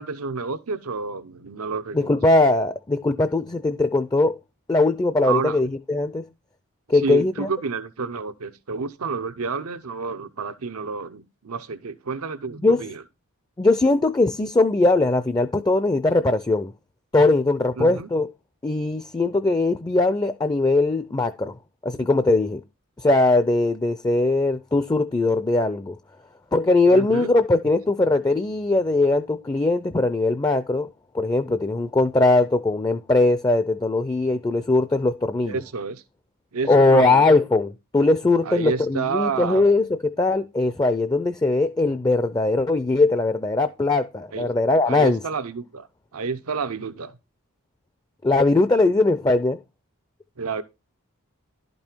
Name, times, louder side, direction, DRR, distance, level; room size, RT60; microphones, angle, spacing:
voice 1, 0.0-2.1 5.2-5.6 6.9-13.0 17.8-18.1 26.9-27.3 35.4-36.0 36.5-37.3 38.4-39.7 44.3-44.5 44.8-45.9 46.1-47.2 50.4-50.6, right 5 dB, 85° right, 0.7 m, -29 dB
voice 2, 1.9-4.4 4.7-6.2 6.9-7.5 12.6-12.8 13.6-16.7 17.1-18.3 18.6-21.5 21.8-22.6 23.0-26.0 26.5-30.9 31.1-35.6 36.7-45.2 48.2-49.6, left 2 dB, 20° left, 0.4 m, -20 dB
11.5 x 5.4 x 4.4 m
head